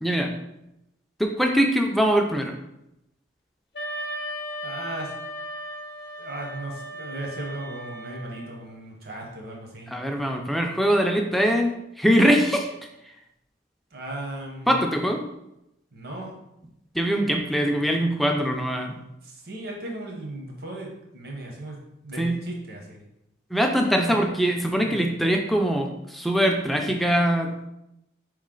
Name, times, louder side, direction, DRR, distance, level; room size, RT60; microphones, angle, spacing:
voice 1, 0.0-0.3 1.2-2.5 9.9-11.7 12.0-12.8 14.7-15.2 16.9-19.0 22.2-22.4 23.5-27.7, equal, ahead, 2 dB, 0.3 m, -22 dB
Wind instrument woodwind instrument, 3.7-8.6, equal, 60° left, 0.6 m, -36 dB
voice 2, 4.6-5.1 6.2-9.9 13.9-14.7 15.9-16.3 19.2-20.9 21.1-21.8 22.0-23.0 24.1-24.2 24.8-25.0, right 1 dB, 55° right, 0 dB, 0.9 m, -36 dB
4.3 x 3.1 x 3.7 m, 0.85 s
head